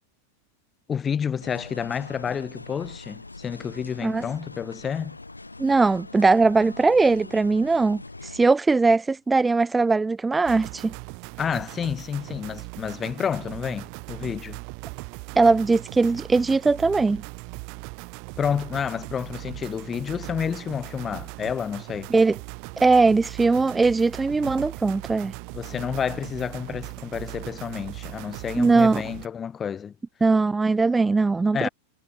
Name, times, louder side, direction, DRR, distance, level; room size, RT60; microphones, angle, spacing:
voice 1, 0.9-5.2 11.4-14.6 18.4-22.1 25.5-29.9 31.5-31.7, left 7 dB, 20° left, 1.9 m, -30 dB
sound 1, 1.4-8.5, left 2 dB, 80° left, 3.1 m, -42 dB
voice 2, 5.6-10.9 15.4-17.2 22.1-22.4 22.8-25.3 28.6-29.0 30.2-31.7, right 3 dB, 10° right, 0.6 m, -20 dB
sound 2, 10.4-29.3, right 40 dB or more, 45° right, 1.8 m, -39 dB
figure-of-eight pair, 90°, 0 cm